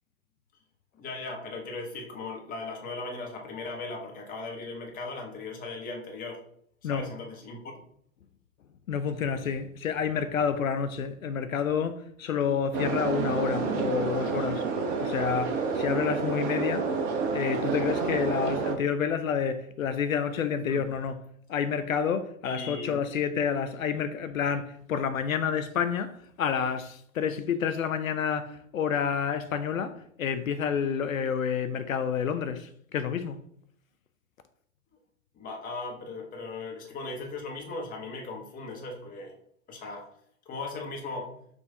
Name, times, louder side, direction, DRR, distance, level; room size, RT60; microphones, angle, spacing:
voice 1, 0.9-6.4 6.9-7.6 20.7-20.9 22.4-23.0 35.4-39.4 39.7-40.1 40.5-41.4, left 3 dB, 20° left, 1.1 m, -38 dB
voice 2, 8.9-14.6 15.0-16.9 17.3-21.2 21.5-33.4, left 7 dB, 80° left, 0.6 m, -29 dB
sound 1, 12.7-18.8, right 4 dB, 20° right, 0.4 m, -29 dB
6.1 x 2.6 x 3.3 m
figure-of-eight pair, 105°, 40 cm